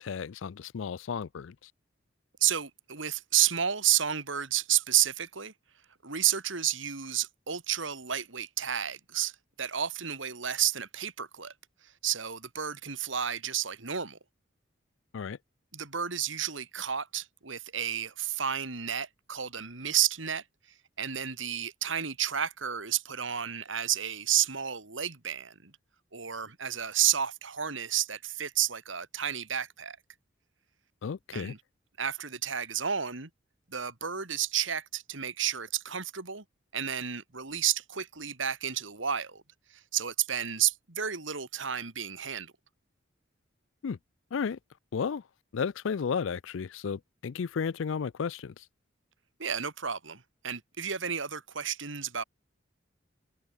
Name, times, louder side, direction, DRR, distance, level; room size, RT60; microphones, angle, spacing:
voice 1, 0.0-1.7 15.1-15.4 31.0-31.5 43.8-44.0 44.3-44.6 44.9-45.2 45.5-48.6, left 6 dB, 80° left, 0.4 m, -33 dB
voice 2, 2.4-5.5 6.0-9.3 9.6-11.5 12.0-14.2 15.7-20.4 21.0-25.7 26.1-30.0 31.3-31.6 32.0-33.3 33.7-36.4 36.7-39.4 39.9-42.5 49.4-52.2, right 10 dB, 75° right, 2.7 m, -31 dB
head